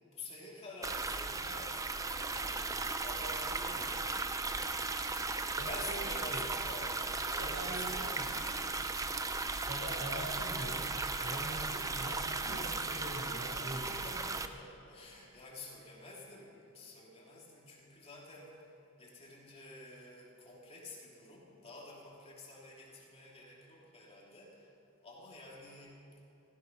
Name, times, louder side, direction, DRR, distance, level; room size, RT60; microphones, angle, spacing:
voice 1, 0.0-2.6 3.0-4.3 5.1-9.0 13.7-18.7 19.0-24.7 25.0-26.0, left 2 dB, 25° left, -4 dB, 2.9 m, -50 dB
sound 1, 0.8-14.5, right 3 dB, 15° right, 0.5 m, -36 dB
voice 2, 5.6-6.4 7.4-8.3 9.7-10.9 11.2-14.1, right 1 dB, 55° right, -1 dB, 3.9 m, -43 dB
16.0 x 15.5 x 5.9 m, 2.9 s
head